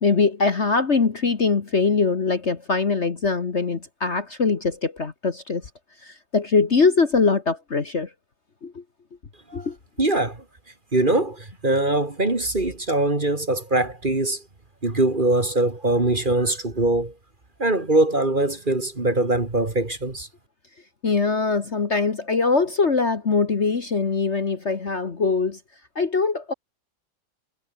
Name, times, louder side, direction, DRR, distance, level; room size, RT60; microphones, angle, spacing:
voice 1, 0.0-5.6 6.0-8.1 8.6-8.8 9.5-9.8 21.0-25.6 26.0-26.5, left 4 dB, 40° left, 1.7 m, -22 dB
voice 2, 10.0-10.4 10.9-14.4 14.8-17.1 17.6-20.3, right 2 dB, 25° right, 2.4 m, -22 dB
omnidirectional pair, 2.0 m